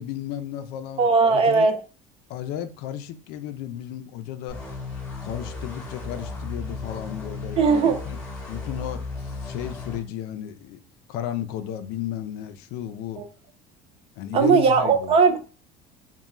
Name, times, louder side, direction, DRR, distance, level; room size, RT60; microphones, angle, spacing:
voice 1, 0.0-1.7 2.3-4.6 5.2-7.6 8.1-8.2 8.5-10.8 11.1-13.2 14.2-15.2, left 11 dB, 65° left, 0.5 m, -34 dB
voice 2, 1.0-1.8 7.6-8.0 13.2-13.3 14.3-15.4, right 5 dB, 30° right, 0.4 m, -18 dB
sound 1, 4.5-10.0, left 3 dB, 5° left, 1.2 m, -35 dB
3.5 x 2.2 x 4.1 m
cardioid pair, 170°, 18 cm